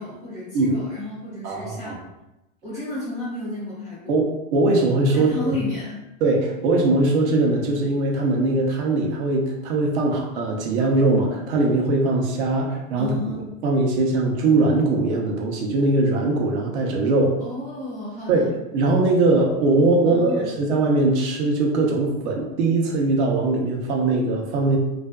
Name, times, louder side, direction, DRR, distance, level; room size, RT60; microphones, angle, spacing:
voice 1, 0.0-2.0 2.6-4.2 5.1-6.0 13.0-13.4 17.4-18.5 20.0-20.5, left 2 dB, 10° right, -10 dB, 0.3 m, -32 dB
voice 2, 1.4-1.9 4.1-5.6 6.2-13.2 13.6-17.4 18.3-18.5 18.7-24.8, right 2 dB, 55° right, 1 dB, 0.7 m, -21 dB
2.5 x 2.3 x 2.2 m, 0.94 s
hypercardioid pair, 130°, 41 cm